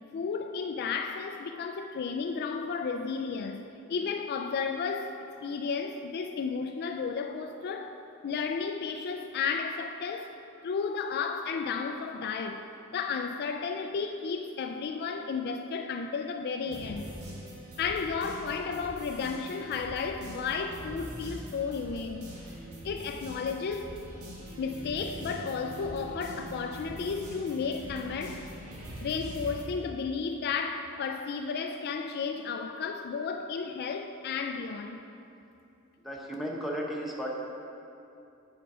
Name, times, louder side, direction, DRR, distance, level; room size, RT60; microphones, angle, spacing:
voice 1, 0.1-3.6 3.9-10.3 10.6-17.1 17.8-22.3 22.8-24.0 24.6-28.5 29.0-35.1, left 5 dB, 50° left, 0.3 m, -33 dB
sound 1, 16.6-29.6, equal, 80° right, 1.6 m, -43 dB
voice 2, 36.0-37.3, equal, ahead, 1.0 m, -34 dB
9.2 x 5.2 x 4.9 m
head